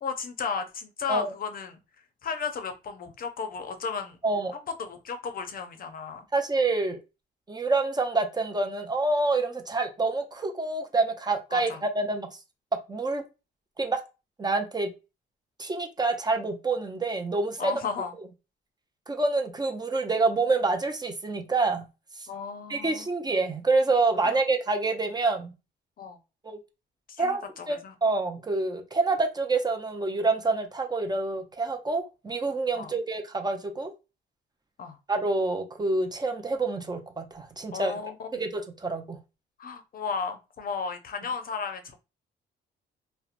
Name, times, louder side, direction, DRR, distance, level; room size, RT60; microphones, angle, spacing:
voice 1, 0.0-1.8 2.2-4.2 4.8-6.3 11.5-11.8 17.6-18.1 22.3-23.1 24.2-24.4 26.0-26.2 27.1-27.9 32.7-32.9 34.8-35.0 37.7-38.5 39.6-42.0, left 5 dB, 45° left, 0.5 m, -34 dB
voice 2, 4.2-4.5 6.3-7.0 7.5-12.3 12.9-13.2 13.8-14.0 14.4-14.9 15.6-17.7 19.1-21.8 22.7-25.5 26.4-26.6 27.2-27.4 27.7-33.9 35.1-37.9 38.3-39.2, right 3 dB, 20° right, 0.5 m, -27 dB
2.8 x 2.1 x 2.4 m
cardioid pair, 90°, 20 cm